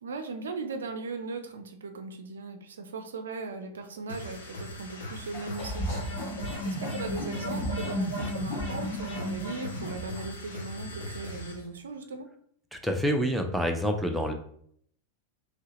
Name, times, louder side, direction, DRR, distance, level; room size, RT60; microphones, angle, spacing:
voice 1, 0.0-6.1 6.4-12.3, right 3 dB, 65° right, 7 dB, 0.4 m, -38 dB
sound 1, 4.1-11.7, left 1 dB, 70° left, 0.6 m, -41 dB
sound 2, 5.3-10.3, equal, 50° left, 1.2 m, -33 dB
voice 2, 12.7-14.3, equal, ahead, 3 dB, 0.4 m, -27 dB
3.0 x 2.7 x 2.8 m, 0.64 s
figure-of-eight pair, 90°, 0 cm